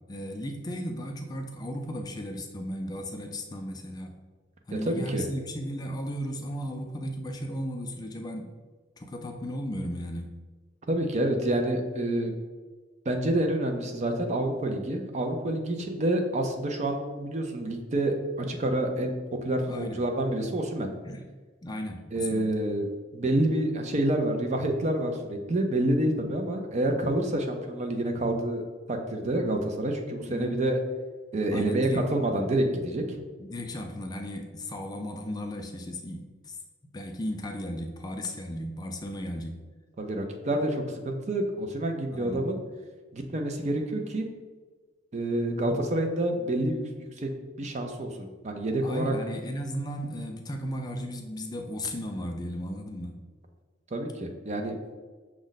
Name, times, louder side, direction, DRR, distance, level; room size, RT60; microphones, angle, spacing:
voice 1, 0.1-4.1 4.7-8.5 9.0-10.3 19.7-20.0 21.0-21.2 21.6-22.4 30.3-30.6 31.5-32.2 33.4-36.6 36.9-39.6 42.1-42.4 48.8-53.2, equal, 20° left, 4 dB, 0.4 m, -35 dB
voice 2, 4.8-5.2 10.9-12.4 13.1-20.9 22.1-22.9 23.1-28.6 28.9-30.8 31.3-33.2 40.0-42.6 43.1-44.3 45.1-46.8 47.2-47.3 47.6-49.1 53.9-54.8, right 1 dB, 40° right, 4 dB, 0.5 m, -28 dB
6.1 x 2.1 x 3.9 m, 1.3 s
head